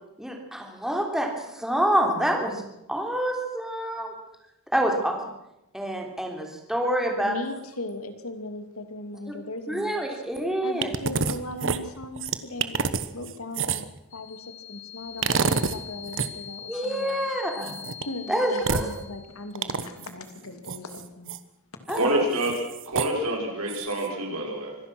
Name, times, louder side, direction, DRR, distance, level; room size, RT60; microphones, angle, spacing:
voice 1, 0.2-2.6 2.9-4.1 4.7-5.2 5.7-7.4 9.7-10.9 16.7-17.8 18.3-18.8 21.9-22.1, equal, ahead, 1 dB, 3.4 m, -27 dB
voice 2, 7.2-10.1 10.6-12.9 13.1-13.8 14.1-17.3 18.1-21.4, left 2 dB, 70° left, 7 dB, 2.6 m, -38 dB
sound 1, 10.8-11.4 11.6-14.0 15.2-15.8 16.1-16.3 17.6-18.0 18.6-18.9 19.5-20.1 20.7-21.4 21.9-22.0 22.4-23.1 23.7-24.1, right 5 dB, 60° right, 1.1 m, -27 dB
sound 2, 14.1-19.8, left 10 dB, 35° left, 4.5 m, -43 dB
voice 3, 21.9-24.8, right 1 dB, 75° right, 0 dB, 6.0 m, -27 dB
25.0 x 17.0 x 6.2 m, 0.88 s
head